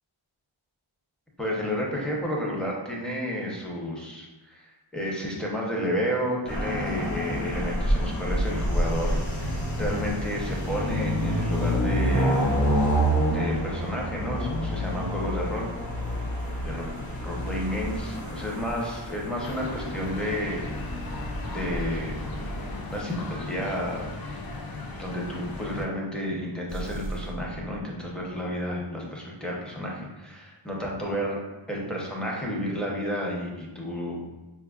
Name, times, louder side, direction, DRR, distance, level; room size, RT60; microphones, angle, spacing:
voice 1, 1.4-12.6 13.3-16.1 16.6-16.8 17.2-20.7 21.5-22.1 22.9-24.1 25.0-31.4 31.7-34.2, equal, ahead, -3 dB, 0.8 m, -31 dB
sound 1, 6.5-22.8, equal, 65° left, 0.9 m, -28 dB
sound 2, 19.4-25.9, left 2 dB, 50° left, 0.5 m, -37 dB
sound 3, 26.7-28.6, right 2 dB, 30° right, 0.3 m, -38 dB
4.6 x 2.4 x 2.4 m, 1.1 s
wide cardioid pair, 50°, 50 cm